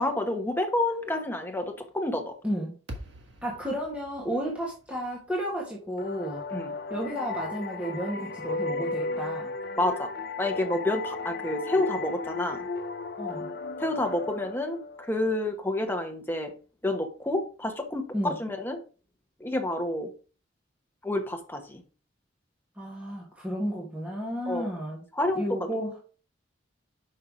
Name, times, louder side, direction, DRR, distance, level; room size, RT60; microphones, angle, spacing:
voice 1, 0.0-2.3 6.5-6.7 9.8-10.1 10.4-12.6 13.8-16.5 16.8-18.8 19.4-20.1 21.0-21.8 24.5-24.7 25.1-25.7, left 1 dB, 10° left, 5 dB, 1.0 m, -29 dB
voice 2, 2.4-2.8 3.4-6.4 6.9-9.5 13.2-13.5 18.1-18.3 22.8-25.0 25.3-26.0, equal, 5° right, -4 dB, 1.5 m, -32 dB
sound 1, 2.9-7.2, equal, 70° right, 1.6 m, -47 dB
sound 2, 6.0-15.4, left 3 dB, 55° left, 0.5 m, -35 dB
5.6 x 5.5 x 4.8 m, 0.36 s
head